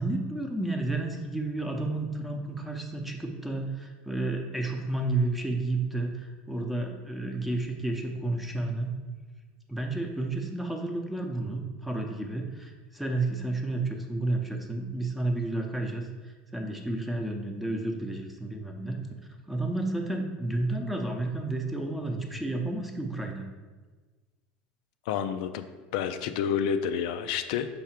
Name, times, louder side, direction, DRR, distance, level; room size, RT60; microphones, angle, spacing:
voice 1, 0.0-8.9 9.7-19.0 19.5-23.4, right 2 dB, ahead, 2 dB, 0.7 m, -31 dB
voice 2, 25.1-25.7 25.9-27.7, left 8 dB, 75° left, 9 dB, 0.4 m, -29 dB
5.6 x 3.5 x 5.8 m, 1.4 s
supercardioid pair, 130°, 4 cm